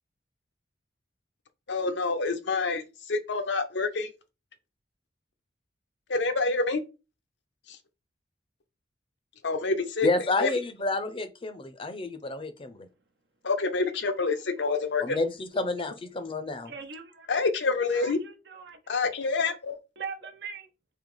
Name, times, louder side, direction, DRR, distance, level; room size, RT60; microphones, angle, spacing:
voice 1, 1.7-4.1 6.1-6.8 7.7-7.8 9.4-10.1 10.4-10.5 13.4-15.2 17.3-18.2 18.9-19.7, left 3 dB, 75° left, 0.7 m, -27 dB
voice 2, 10.0-12.9 15.0-16.7, left 2 dB, 30° left, 0.6 m, -30 dB
voice 3, 16.7-17.3 17.9-18.8 20.0-20.7, right 5 dB, 65° right, 0.8 m, -41 dB
3.9 x 2.8 x 4.9 m
head